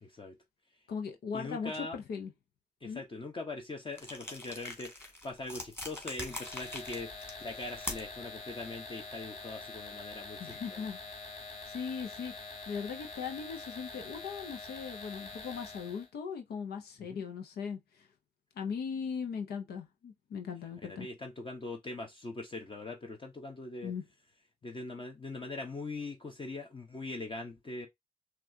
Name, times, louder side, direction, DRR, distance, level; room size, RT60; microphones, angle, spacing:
voice 1, 0.0-0.3 1.3-2.0 2.8-10.8 17.1-17.2 20.8-23.9 24.6-27.9, left 2 dB, 30° left, 0.9 m, -42 dB
voice 2, 0.9-2.3 2.8-3.0 10.4-11.0 11.3-11.4 11.7-12.3 12.7-18.1 18.6-21.1 23.8-24.0, left 6 dB, 90° left, 0.8 m, -39 dB
sound 1, 3.9-8.2, left 1 dB, 15° left, 2.0 m, -43 dB
sound 2, 6.2-16.1, left 3 dB, 50° left, 1.9 m, -45 dB
5.9 x 2.5 x 2.7 m
cardioid pair, 65°, 16 cm